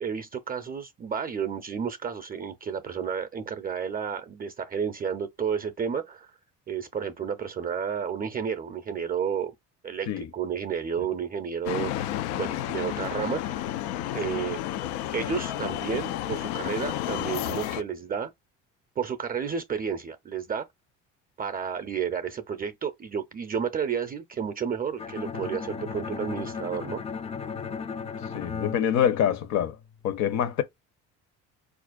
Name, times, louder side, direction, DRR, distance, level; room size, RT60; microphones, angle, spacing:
voice 1, 0.0-6.3 6.7-9.5 9.8-12.1 12.4-13.7 14.1-14.6 15.1-18.3 19.0-20.7 21.4-27.0, right 7 dB, 30° right, 0.5 m, -31 dB
sound 1, 11.7-17.8, left 13 dB, 90° left, 0.5 m, -31 dB
Bowed string instrument, 25.0-29.9, left 6 dB, 20° left, 0.4 m, -36 dB
voice 2, 28.2-29.8 30.0-30.6, left 9 dB, 60° left, 0.8 m, -26 dB
4.3 x 2.5 x 2.3 m
cardioid pair, 100°, 31 cm